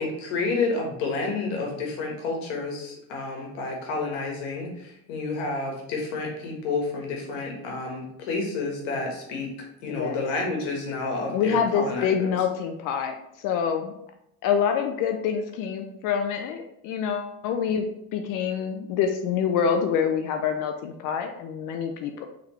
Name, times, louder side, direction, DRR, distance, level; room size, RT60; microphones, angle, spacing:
voice 1, 0.0-9.5 9.8-12.3, left 3 dB, 80° left, 0 dB, 1.4 m, -30 dB
voice 2, 9.9-10.2 11.3-13.9 14.4-22.3, left 7 dB, 60° left, 5 dB, 0.5 m, -26 dB
3.6 x 3.5 x 3.0 m, 0.80 s
supercardioid pair, 110°, 36 cm